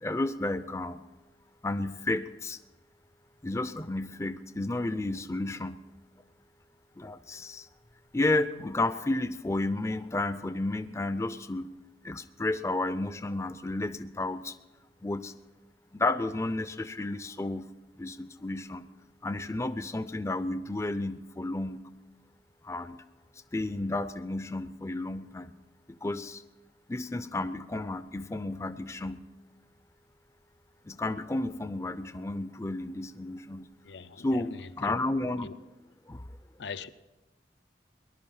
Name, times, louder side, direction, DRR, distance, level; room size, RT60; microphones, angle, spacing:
voice 1, 0.0-1.0 1.6-2.6 3.4-5.8 7.0-7.7 8.1-11.7 12.0-14.6 15.0-15.3 15.9-17.7 18.0-18.9 19.2-21.8 22.6-23.0 23.5-25.5 25.9-26.4 26.9-29.2 30.9-33.7 34.2-35.5 36.1-36.3, left 2 dB, 15° left, 12 dB, 0.4 m, -32 dB
voice 2, 33.8-35.0 35.4-35.5 36.6-36.9, left 5 dB, 85° left, 13 dB, 0.6 m, -42 dB
19.0 x 11.5 x 5.6 m, 1.1 s
head